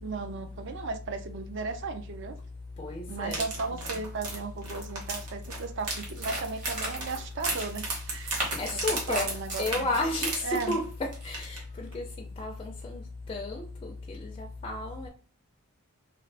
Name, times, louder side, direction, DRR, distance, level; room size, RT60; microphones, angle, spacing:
voice 1, 0.0-2.4 3.1-8.5 9.1-9.9 10.4-10.7, right 4 dB, 55° right, 0.4 m, -35 dB
voice 2, 2.8-3.4 8.6-9.3 9.6-12.0 12.4-13.0 13.3-15.1, left 2 dB, 25° left, 0.4 m, -32 dB
sound 1, 3.3-11.0 11.3-11.6 11.9-12.0, right 3 dB, 70° right, 1.0 m, -35 dB
sound 2, 5.4-5.6 5.9-7.2 7.6-7.7 8.1-10.0 10.7-11.4, right 2 dB, 35° right, 1.2 m, -36 dB
2.6 x 2.5 x 3.2 m
head